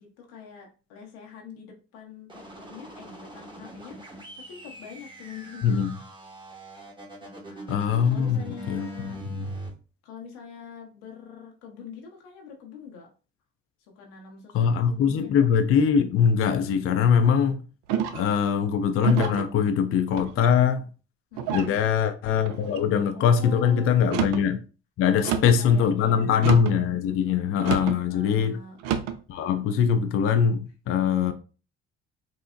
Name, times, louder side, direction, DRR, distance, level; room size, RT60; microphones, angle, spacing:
voice 1, 0.0-5.8 7.2-7.8 8.1-9.2 10.0-13.1 14.0-15.4 21.3-21.8 23.1-24.2 25.1-26.5 27.8-28.8, left 5 dB, 90° left, 0.8 m, -44 dB
sound 1, 2.3-9.7, right 1 dB, 15° right, 0.9 m, -41 dB
voice 2, 5.6-6.0 7.7-8.9 9.3-9.5 14.5-17.6 18.1-20.9 21.5-24.6 25.0-28.6 29.3-31.3, left 7 dB, 45° left, 0.4 m, -22 dB
sound 2, 17.9-18.4 19.0-19.5 20.1-20.6 21.4-21.8 22.4-22.9 24.0-24.5 25.2-25.6 26.4-26.8 27.6-28.0 28.8-29.2, right 8 dB, 85° right, 0.5 m, -29 dB
3.8 x 2.0 x 2.4 m
supercardioid pair, 65°, 31 cm